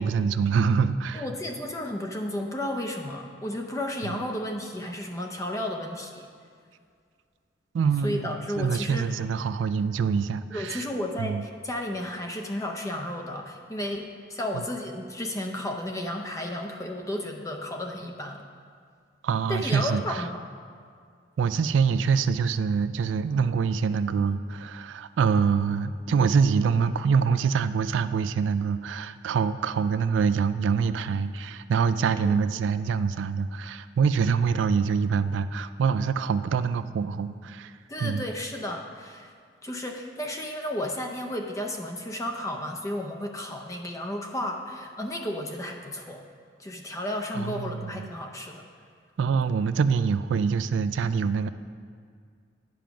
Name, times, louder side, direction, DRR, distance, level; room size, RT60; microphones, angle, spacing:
voice 1, 0.0-1.2 4.1-4.2 7.7-8.3 8.6-10.8 11.2-11.4 14.5-14.6 19.2-20.2 21.4-37.7 38.0-38.2 47.3-48.1 49.2-51.5, right 6 dB, 75° right, 13 dB, 0.3 m, -25 dB
voice 2, 1.1-6.3 8.0-9.2 10.5-18.5 19.5-20.4 32.1-32.4 37.9-39.3 39.6-46.2 46.6-48.7, left 1 dB, 15° left, 3 dB, 0.5 m, -33 dB
9.3 x 5.0 x 5.8 m, 2.2 s
head